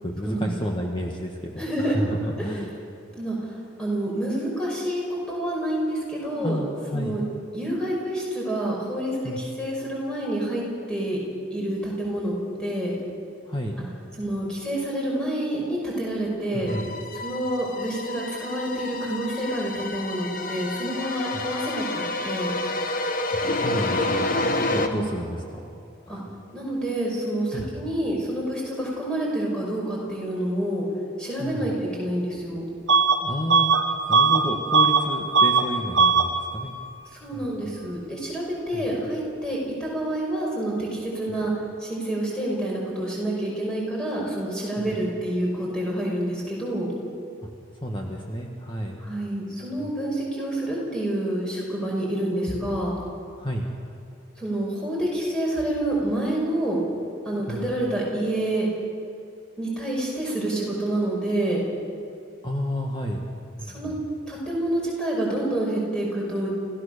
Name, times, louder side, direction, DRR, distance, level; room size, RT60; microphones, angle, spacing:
voice 1, 0.0-2.7 6.3-7.1 9.2-9.4 13.4-13.7 16.5-16.9 21.3-21.4 23.3-25.7 26.1-26.3 27.5-27.7 31.4-31.7 33.2-33.7 34.1-36.7 37.3-37.6 38.7-38.8 44.8-44.9 47.8-49.0 53.4-53.7 57.5-57.7 62.4-63.2 63.6-63.9, equal, 25° left, 0 dB, 1.7 m, -31 dB
voice 2, 1.6-2.0 3.2-6.6 6.9-7.2 7.5-10.6 10.9-11.2 11.5-12.3 12.6-12.9 14.2-16.8 17.2-22.5 24.8-25.0 26.1-26.2 26.5-30.8 31.2-32.6 37.2-41.5 41.8-46.9 49.0-52.9 54.4-56.8 57.2-58.7 59.6-61.6 63.6-63.9 64.3-66.5, right 1 dB, 5° left, -4 dB, 5.8 m, -28 dB
sound 1, 16.7-24.9, left 2 dB, 45° left, 1.4 m, -29 dB
Bus / Alarm, 32.9-33.2 33.5-35.1 35.3-35.7 35.9-36.3, right 5 dB, 75° right, 1.6 m, -19 dB
29.5 x 15.5 x 6.8 m, 2.5 s
head